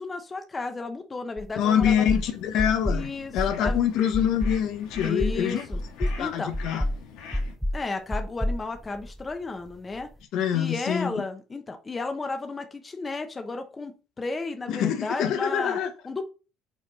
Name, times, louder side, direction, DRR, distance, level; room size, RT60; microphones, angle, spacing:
voice 1, 0.0-2.1 2.9-3.3 3.6-3.8 5.0-5.8 6.2-6.5 7.7-10.1 10.5-13.9 14.2-15.8 16.0-16.3, left 3 dB, 20° left, 1.0 m, -33 dB
sound 1, 1.4-1.5 1.8-2.2 2.6-3.0 3.4-3.8 4.1-4.6 5.0-5.4 5.7-6.2 6.5-7.0 7.3-7.8 8.1-9.3, left 1 dB, ahead, 0.4 m, -28 dB
voice 2, 1.5-5.7 6.0-6.8 10.3-11.1 14.7-15.9, left 9 dB, 65° left, 1.0 m, -25 dB
sound 2, 1.6-7.6, left 6 dB, 80° left, 1.9 m, -45 dB
5.8 x 4.3 x 4.3 m
cardioid pair, 125°, 0 cm